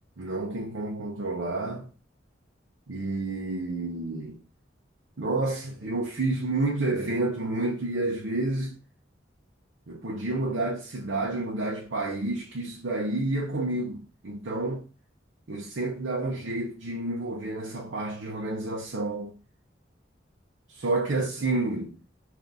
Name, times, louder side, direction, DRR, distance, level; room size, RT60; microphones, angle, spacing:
voice 1, 0.2-1.9 2.9-4.4 5.2-8.8 9.9-14.8 15.5-19.3 20.8-22.0, right 2 dB, 85° right, 0.7 m, -30 dB
3.5 x 2.6 x 3.9 m
head